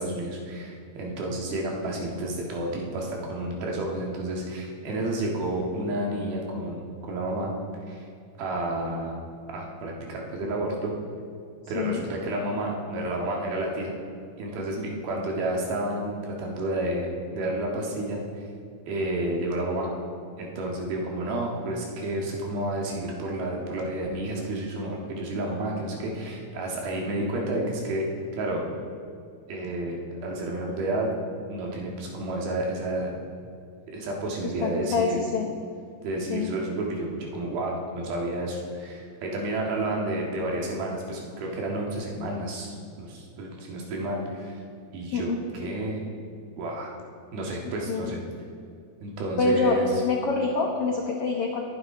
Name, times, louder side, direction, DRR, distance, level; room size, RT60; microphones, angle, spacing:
voice 1, 0.0-7.6 7.9-8.1 8.4-9.2 9.5-10.9 11.7-13.9 14.4-18.2 18.9-19.9 20.4-28.0 28.3-28.7 29.5-31.1 31.5-33.1 33.9-35.2 36.0-44.6 44.9-46.0 46.6-46.9 47.3-48.2 49.0-49.9, right 1 dB, 75° right, -1 dB, 3.7 m, -30 dB
voice 2, 34.6-35.5 36.3-36.5 45.1-45.4 47.9-48.1 49.4-49.8 50.0-51.6, left 4 dB, 75° left, 0 dB, 1.3 m, -25 dB
22.0 x 9.7 x 3.9 m, 2.4 s
omnidirectional pair, 4.3 m